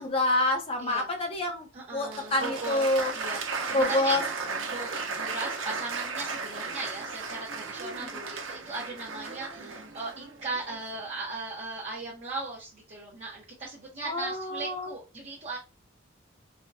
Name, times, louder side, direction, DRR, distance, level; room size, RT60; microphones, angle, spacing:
voice 1, 0.0-3.1 3.7-4.2 14.0-14.9, left 2 dB, 30° left, 0.7 m, -27 dB
voice 2, 0.8-1.3 1.7-2.9 3.1-4.2 4.5-15.6, right 3 dB, 35° right, 0.8 m, -38 dB
Applause, 2.0-11.0, right 4 dB, 80° right, 0.8 m, -35 dB
4.2 x 2.2 x 2.6 m
head